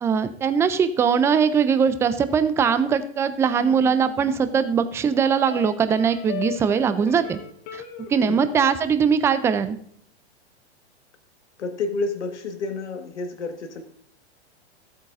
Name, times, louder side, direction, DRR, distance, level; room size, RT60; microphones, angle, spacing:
voice 1, 0.0-7.4 7.7-7.8 8.1-9.8, right 6 dB, 10° right, 12 dB, 0.3 m, -21 dB
a high e which is low, 3.6-8.8, left 9 dB, 45° left, 1.6 m, -38 dB
voice 2, 11.6-13.8, left 3 dB, 85° left, 5 dB, 1.6 m, -30 dB
14.0 x 8.3 x 2.5 m, 0.63 s
hypercardioid pair, 110°, 34 cm